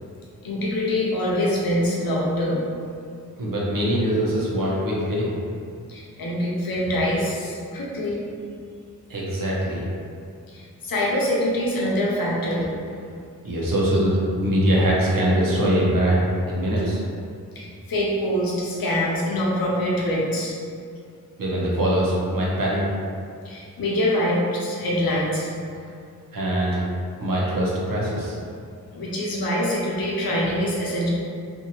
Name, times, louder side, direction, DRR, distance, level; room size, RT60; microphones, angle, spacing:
voice 1, 0.4-2.6 5.9-8.2 10.5-12.7 17.5-20.6 23.4-25.5 28.9-31.1, left 1 dB, 65° left, -4 dB, 0.8 m, -24 dB
voice 2, 3.4-5.3 9.1-9.8 13.4-17.0 21.4-22.8 26.3-26.8 27.2-28.3, right 1 dB, 60° right, -5 dB, 0.9 m, -22 dB
2.7 x 2.6 x 2.8 m, 2.4 s
cardioid pair, 45°, 39 cm